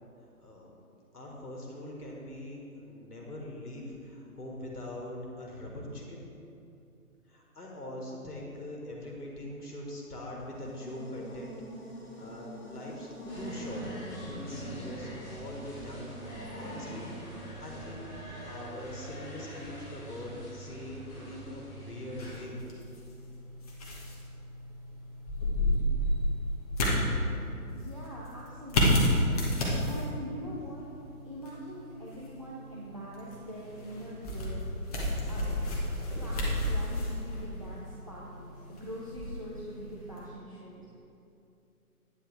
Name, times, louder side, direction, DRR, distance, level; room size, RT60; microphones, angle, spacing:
voice 1, 0.4-0.7 1.1-6.2 7.3-11.5 12.2-13.1 13.4-16.1 16.6-17.1 17.4-18.1 18.4-22.6, left 1 dB, 80° left, -1 dB, 1.7 m, -42 dB
Buzz, 10.2-18.3, right 1 dB, 40° left, 1.8 m, -46 dB
sound 1, 13.3-22.4, right 1 dB, 5° left, 1.6 m, -44 dB
sound 2, 22.2-40.3, left 1 dB, 25° left, 1.1 m, -32 dB
voice 2, 27.7-29.3 29.8-30.9 31.2-35.6 36.1-40.9, equal, 25° right, -6 dB, 0.5 m, -43 dB
9.4 x 7.0 x 3.3 m, 2.7 s
figure-of-eight pair, 145°, 46 cm